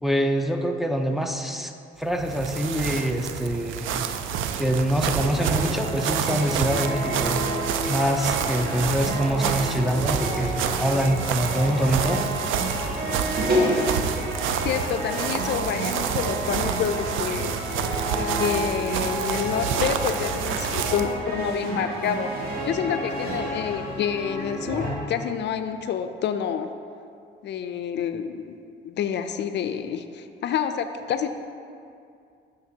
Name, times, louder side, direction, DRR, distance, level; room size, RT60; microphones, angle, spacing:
voice 1, 0.0-1.7 2.0-4.1 4.6-7.4 7.9-12.2, equal, ahead, 3 dB, 0.5 m, -25 dB
sound 1, 2.1-21.2, right 8 dB, 85° right, 0.4 m, -29 dB
sound 2, 5.1-24.9, equal, 50° right, 2.0 m, -30 dB
voice 2, 14.6-17.5 18.1-22.3 22.6-26.7 27.4-28.6 28.8-31.3, left 8 dB, 60° left, 9 dB, 0.4 m, -28 dB
10.5 x 6.4 x 2.8 m, 2.4 s
cardioid pair, 90°, 20 cm